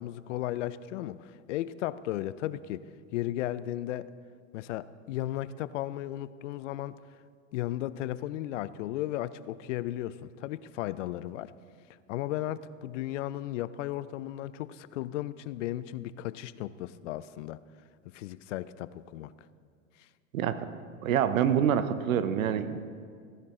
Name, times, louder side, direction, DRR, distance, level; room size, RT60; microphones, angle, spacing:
voice 1, 0.0-2.8 3.1-4.1 4.5-7.0 7.5-11.5 12.1-17.6 18.1-19.3, left 14 dB, 65° left, 17 dB, 0.5 m, -35 dB
voice 2, 20.3-20.7 21.0-22.8, right 9 dB, 85° right, 12 dB, 0.9 m, -26 dB
15.5 x 10.5 x 3.8 m, 2.1 s
hypercardioid pair, 125°, 40 cm